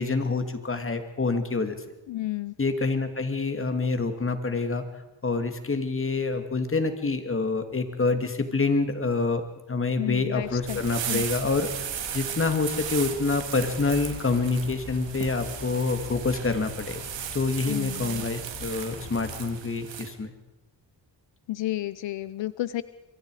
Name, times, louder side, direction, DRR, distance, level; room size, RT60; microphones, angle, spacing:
voice 1, 0.0-1.7 2.6-4.8 5.2-17.1 17.3-20.3, left 3 dB, 30° left, 7 dB, 2.5 m, -27 dB
voice 2, 2.1-2.5 10.0-10.8 11.1-11.3 17.6-18.3 21.5-22.8, left 15 dB, 80° left, 16 dB, 0.8 m, -31 dB
sound 1, 10.4-19.4, left 5 dB, 60° left, 5.1 m, -44 dB
sound 2, 10.7-20.1, right 9 dB, 85° right, 2.6 m, -36 dB
26.5 x 23.0 x 5.0 m, 1.0 s
cardioid pair, 105°, 43 cm